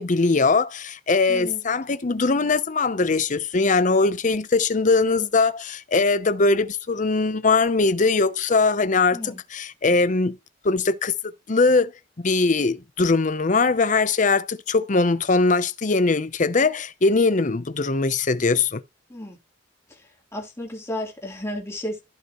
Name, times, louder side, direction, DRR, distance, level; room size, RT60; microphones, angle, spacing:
voice 1, 0.0-10.4 10.6-11.9 12.2-18.8, left 3 dB, 45° left, 0.7 m, -21 dB
voice 2, 1.3-1.6 9.1-9.4 19.1-19.4 19.9-20.0 20.3-22.0, left 1 dB, 15° left, 3.4 m, -33 dB
14.5 x 5.3 x 3.0 m
head